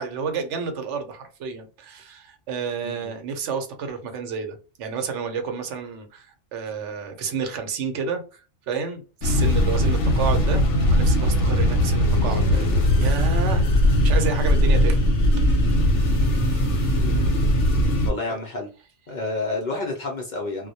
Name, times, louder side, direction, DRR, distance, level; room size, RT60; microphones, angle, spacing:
voice 1, 0.0-6.3 6.5-10.6 10.9-13.7 14.0-15.0 15.4-15.5 18.3-18.4, right 5 dB, 80° right, 0.9 m, -30 dB
sound 1, 9.2-18.1, left 1 dB, 90° left, 0.9 m, -19 dB
voice 2, 17.0-17.5 18.0-18.7 19.1-20.7, left 2 dB, 50° left, 0.6 m, -30 dB
2.2 x 2.0 x 2.7 m
omnidirectional pair, 1.2 m